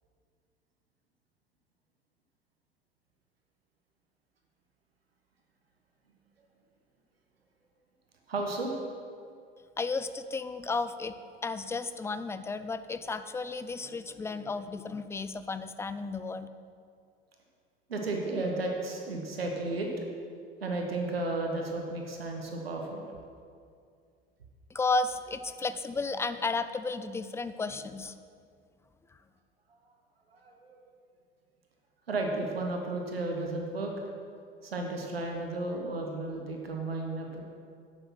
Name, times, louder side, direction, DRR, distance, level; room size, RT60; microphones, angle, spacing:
voice 1, 8.3-8.8 17.9-19.9 20.6-23.0 30.3-30.8 32.1-33.9 34.6-37.4, right 2 dB, 80° right, 1 dB, 1.3 m, -33 dB
voice 2, 9.8-11.1 11.4-16.5 24.7-28.1, left 3 dB, 10° left, 12 dB, 0.4 m, -33 dB
10.0 x 6.7 x 5.9 m, 2.3 s
figure-of-eight pair, 75°, 29 cm